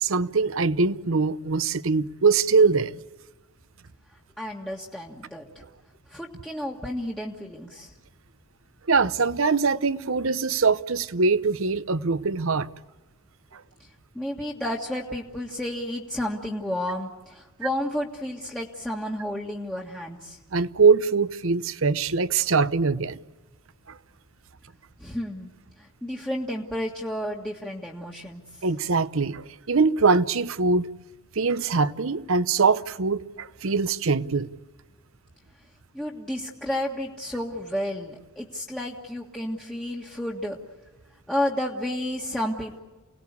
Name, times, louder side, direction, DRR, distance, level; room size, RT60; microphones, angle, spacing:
voice 1, 0.0-3.0 8.9-12.7 13.5-13.6 20.5-23.2 23.9-24.0 28.6-30.9 31.3-34.5, right 4 dB, 60° right, 0.8 m, -22 dB
voice 2, 4.4-5.6 6.1-7.9 13.8-20.4 25.0-25.5 25.8-28.6 35.9-40.6 41.3-42.8, left 1 dB, 5° left, 1.7 m, -31 dB
29.5 x 18.5 x 8.3 m
head